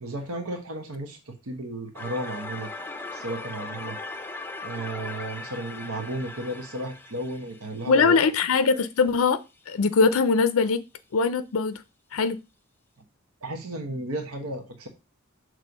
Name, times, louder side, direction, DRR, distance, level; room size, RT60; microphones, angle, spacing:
voice 1, 0.0-2.7 3.1-4.0 4.6-8.2 13.4-14.9, right 1 dB, 80° right, 1.2 m, -34 dB
sound 1, 2.0-8.8, left 3 dB, 10° left, 0.5 m, -39 dB
voice 2, 7.9-9.4 9.7-10.8 11.1-11.8 12.1-12.4, left 4 dB, 65° left, 0.4 m, -21 dB
6.3 x 3.2 x 5.2 m
head